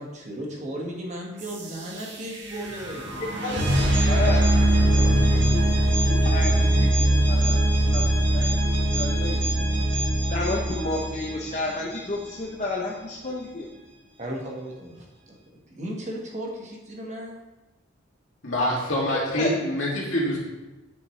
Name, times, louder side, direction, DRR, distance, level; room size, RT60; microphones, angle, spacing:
voice 1, 0.0-3.1 3.5-3.9 4.9-5.2 9.4-9.8 14.2-15.4 15.7-17.4, right 1 dB, 35° right, -1 dB, 1.3 m, -36 dB
sound 1, 1.4-12.2, right 1 dB, 65° right, 1.5 m, -22 dB
voice 2, 3.4-4.4 5.3-5.6 6.1-6.9 7.2-9.4 10.3-13.7 18.7-18.8 19.1-19.5, left 2 dB, 35° left, -2 dB, 0.7 m, -31 dB
voice 3, 18.4-20.4, equal, 85° left, -4 dB, 2.2 m, -25 dB
8.0 x 6.3 x 3.2 m, 1.1 s
head